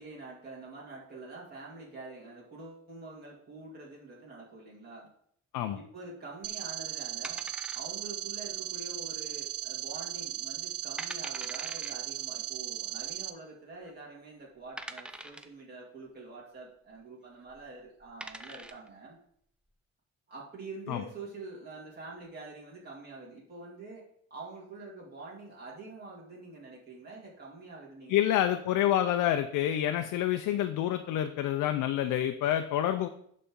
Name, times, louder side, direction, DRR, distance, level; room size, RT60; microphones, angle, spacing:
voice 1, 0.0-5.1 5.7-7.5 7.7-19.2 20.3-24.0 24.3-28.5, right 3 dB, 30° right, -5 dB, 2.5 m, -46 dB
sound 1, 6.4-13.3, right 12 dB, 50° right, 0.6 m, -37 dB
sound 2, 7.2-8.2 8.5-8.6 9.2-9.6 10.0-10.1 10.6-10.7 11.0-11.9 13.0-13.1 13.8-13.9 14.8-15.6 17.4-17.6 18.0-18.9, right 1 dB, 5° right, 0.6 m, -43 dB
voice 2, 28.1-33.1, left 11 dB, 85° left, 7 dB, 0.6 m, -28 dB
11.0 x 4.2 x 3.7 m, 0.66 s
cardioid pair, 90°, 30 cm